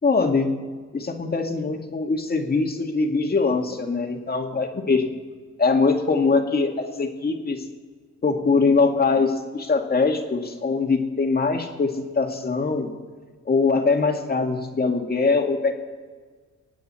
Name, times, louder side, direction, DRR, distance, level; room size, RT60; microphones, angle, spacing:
voice 1, 0.0-0.6 0.9-5.1 5.6-7.6 8.2-12.9 13.5-15.7, left 4 dB, 30° left, 3 dB, 2.0 m, -22 dB
25.0 x 9.1 x 4.3 m, 1.5 s
cardioid pair, 90°, 30 cm